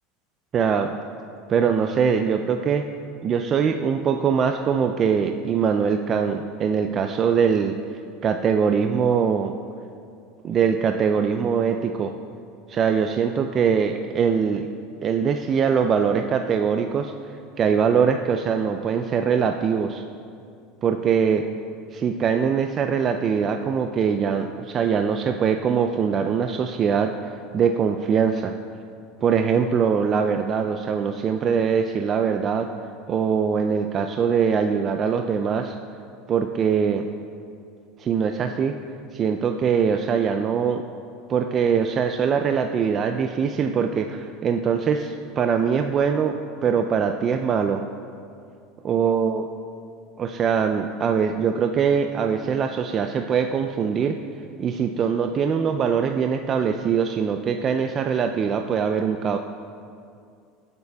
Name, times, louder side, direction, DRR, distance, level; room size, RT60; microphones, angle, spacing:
voice 1, 0.5-0.9 1.5-2.9 3.2-7.8 8.2-9.5 10.4-12.1 12.7-14.7 15.0-17.1 17.6-20.0 20.8-21.4 21.9-28.5 29.2-32.7 33.1-35.8 36.3-37.1 38.0-38.8 39.1-40.8 41.3-47.8 48.8-49.4 50.2-54.2 54.6-59.4, right 6 dB, 40° right, 6 dB, 0.4 m, -22 dB
16.0 x 6.7 x 2.3 m, 2.4 s
hypercardioid pair, 90°, 0 cm